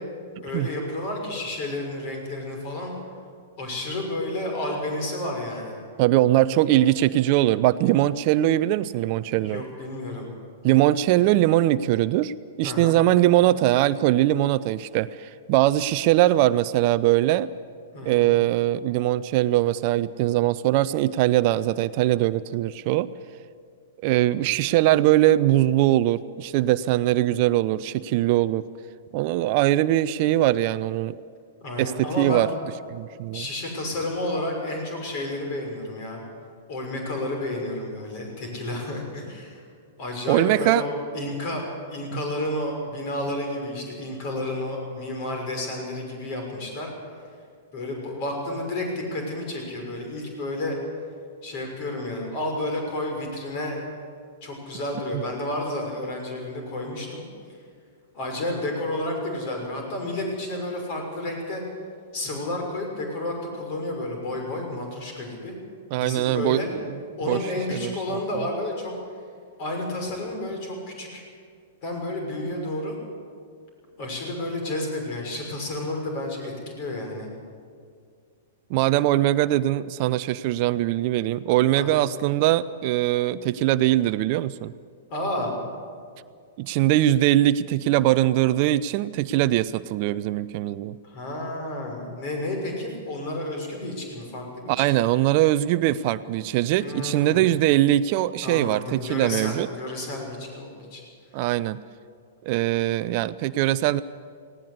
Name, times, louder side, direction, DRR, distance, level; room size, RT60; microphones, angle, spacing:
voice 1, 0.4-3.0 3.6-5.8 9.4-10.3 12.6-13.0 17.9-18.2 31.6-32.5 33.3-36.2 36.7-39.6 40.0-41.6 41.9-46.9 47.7-50.8 51.4-53.9 54.4-57.2 58.1-61.6 62.1-65.5 66.0-66.7 67.2-68.9 69.6-71.2 71.8-73.0 74.0-77.3 81.7-82.0 85.1-85.5 91.0-94.7 96.8-97.5 98.4-101.0, left 1 dB, 45° left, 2 dB, 6.1 m, -31 dB
voice 2, 6.0-9.6 10.6-12.3 12.6-17.5 18.0-23.1 24.0-28.7 29.1-31.2 31.8-32.5 32.9-33.4 40.3-40.8 65.9-66.6 67.3-67.4 67.7-67.9 78.7-84.7 86.6-91.0 94.7-99.7 101.3-101.8 102.4-104.0, right 14 dB, 45° right, 17 dB, 0.5 m, -21 dB
19.0 x 17.5 x 8.4 m, 2.1 s
figure-of-eight pair, 105°, 0 cm